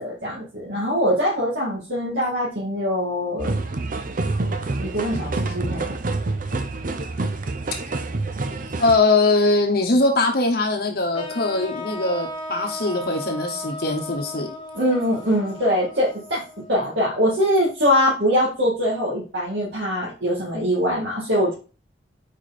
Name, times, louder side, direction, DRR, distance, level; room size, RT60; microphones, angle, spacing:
voice 1, 0.0-3.6 4.8-6.0 14.7-16.4 16.7-21.5, equal, 70° right, -6 dB, 2.1 m, -23 dB
sound 1, 3.4-9.0, right 2 dB, 45° right, 0.6 m, -27 dB
voice 2, 8.8-14.5, left 3 dB, 55° left, 1 dB, 1.0 m, -21 dB
sound 2, 11.1-17.2, left 1 dB, 30° left, 1.0 m, -36 dB
5.0 x 4.6 x 4.2 m, 0.35 s
head